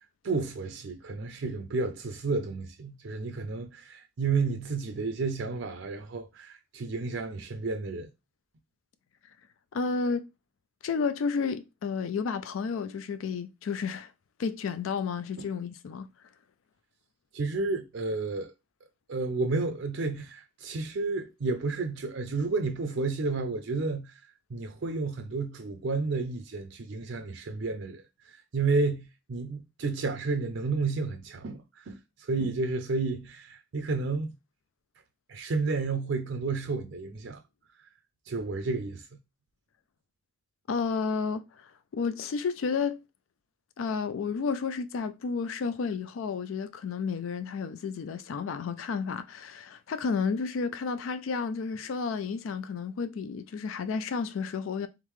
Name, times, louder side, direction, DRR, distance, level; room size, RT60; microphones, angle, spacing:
voice 1, 0.2-8.1 15.4-15.5 17.3-18.5 19.1-24.2 24.5-34.3 35.3-37.4 38.3-39.1, right 3 dB, 70° right, 0.5 m, -31 dB
voice 2, 9.7-10.3 10.8-14.1 14.4-16.1 40.7-43.0 43.8-54.9, left 5 dB, 85° left, 0.4 m, -31 dB
3.6 x 3.6 x 3.1 m
head